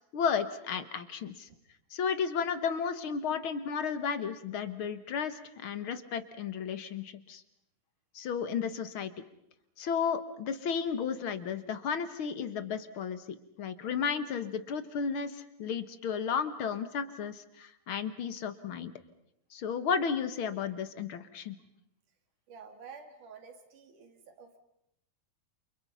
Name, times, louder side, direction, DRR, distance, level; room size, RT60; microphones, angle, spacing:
voice 1, 0.1-1.5 1.9-7.4 8.1-9.2 9.8-18.9 19.5-21.5, left 6 dB, 55° left, 12 dB, 1.7 m, -33 dB
voice 2, 22.5-24.6, right 5 dB, 85° right, 6 dB, 4.1 m, -50 dB
29.5 x 29.0 x 5.6 m, 0.78 s
omnidirectional pair, 3.5 m